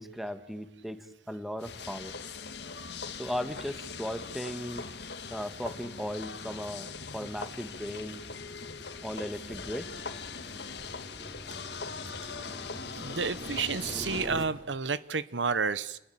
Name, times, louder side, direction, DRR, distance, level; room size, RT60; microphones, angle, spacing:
voice 1, 0.0-2.2 3.2-4.9 5.3-8.2 9.0-9.9, equal, ahead, 10 dB, 1.7 m, -37 dB
sound 1, 1.6-14.3, left 5 dB, 65° left, 1.9 m, -41 dB
sound 2, 5.0-14.4, equal, 20° right, 3.5 m, -47 dB
voice 2, 13.0-16.0, right 5 dB, 85° right, 16 dB, 1.1 m, -30 dB
30.0 x 21.0 x 8.8 m, 0.84 s
head